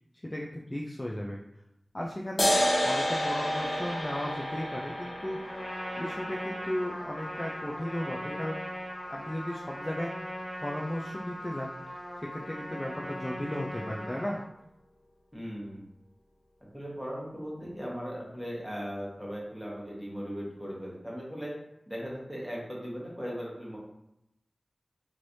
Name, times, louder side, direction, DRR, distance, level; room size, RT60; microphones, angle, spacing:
voice 1, 0.2-1.4 1.9-2.5 2.8-5.4 6.0-8.6 9.1-10.2 10.6-14.4, left 1 dB, 25° left, -2 dB, 0.4 m, -35 dB
sound 1, 2.4-9.4, equal, 75° left, 0.8 m, -31 dB
Trumpet, 5.4-14.4, equal, 55° left, 0.9 m, -39 dB
voice 2, 15.3-15.8 16.7-21.5 21.9-23.8, equal, ahead, -5 dB, 1.2 m, -38 dB
3.2 x 3.0 x 2.6 m, 0.83 s
wide cardioid pair, 65°, 0 cm